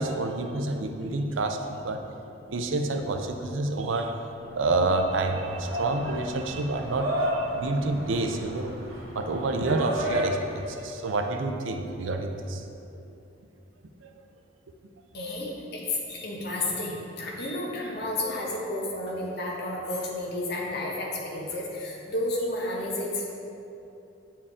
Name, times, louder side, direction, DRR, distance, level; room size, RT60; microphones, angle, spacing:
voice 1, 0.0-2.0 2.3-4.1 4.6-8.7 9.1-12.6, right 2 dB, 80° right, 4 dB, 0.5 m, -28 dB
sound 1, 4.4-10.7, equal, 55° right, 1.6 m, -33 dB
voice 2, 15.1-23.3, left 1 dB, 55° left, -3 dB, 1.2 m, -31 dB
8.5 x 4.5 x 3.6 m, 2.8 s
head